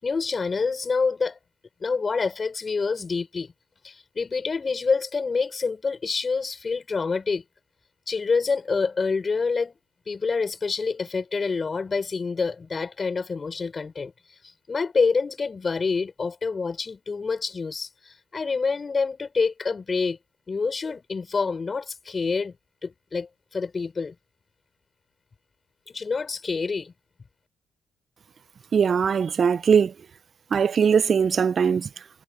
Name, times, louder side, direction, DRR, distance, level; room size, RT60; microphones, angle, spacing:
voice 1, 0.0-1.4 1.8-3.5 3.8-7.4 8.1-9.7 10.1-14.1 14.7-20.2 20.5-22.6 22.8-24.1 25.9-26.9, left 4 dB, 35° left, 4.3 m, -27 dB
voice 2, 28.7-29.9 30.5-31.9, right 6 dB, 45° right, 0.5 m, -20 dB
cardioid pair, 90°, 0 cm